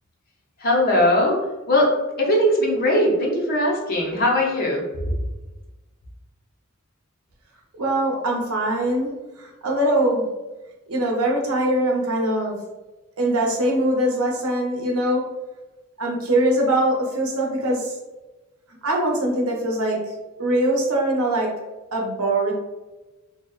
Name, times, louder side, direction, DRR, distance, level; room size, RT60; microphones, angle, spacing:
voice 1, 0.6-1.4 1.7-1.9 2.2-4.8, left 1 dB, 45° left, -1 dB, 0.6 m, -19 dB
voice 2, 7.7-10.3 10.9-12.6 13.2-15.2 16.0-17.9 18.8-20.0 20.4-21.5 21.9-22.5, right 1 dB, 90° right, -1 dB, 0.6 m, -22 dB
2.7 x 2.0 x 2.3 m, 1.1 s
head